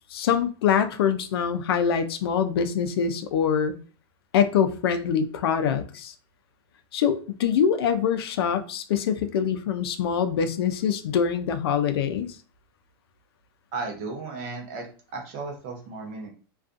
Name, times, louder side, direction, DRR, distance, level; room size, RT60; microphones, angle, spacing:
voice 1, 0.1-3.7 4.3-6.1 6.9-12.3, left 7 dB, 85° left, 9 dB, 0.4 m, -24 dB
voice 2, 13.7-14.9 15.1-16.3, right 3 dB, 40° right, 2 dB, 0.7 m, -34 dB
2.4 x 2.3 x 2.5 m, 0.37 s
supercardioid pair, 175°, 13 cm